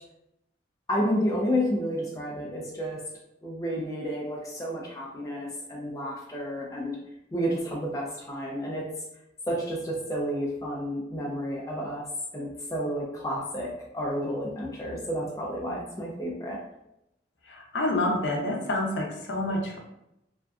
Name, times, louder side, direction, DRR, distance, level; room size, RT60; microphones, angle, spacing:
voice 1, 0.9-3.0 3.4-7.0 7.3-8.9 9.5-12.0 12.3-16.6, equal, 20° left, -3 dB, 0.3 m, -31 dB
voice 2, 17.7-19.8, left 1 dB, 70° left, 0 dB, 0.5 m, -27 dB
2.5 x 2.3 x 2.2 m, 0.85 s
head